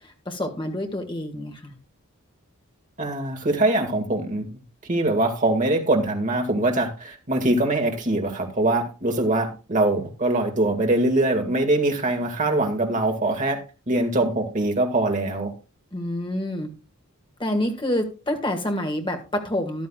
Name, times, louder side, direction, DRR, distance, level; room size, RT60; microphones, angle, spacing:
voice 1, 0.3-1.7 15.9-16.7 17.4-19.9, left 1 dB, 20° left, 4 dB, 1.9 m, -27 dB
voice 2, 3.0-4.5 4.9-13.6 13.9-15.5, right 2 dB, 35° right, 2 dB, 2.1 m, -23 dB
14.0 x 11.0 x 2.4 m, 0.31 s
head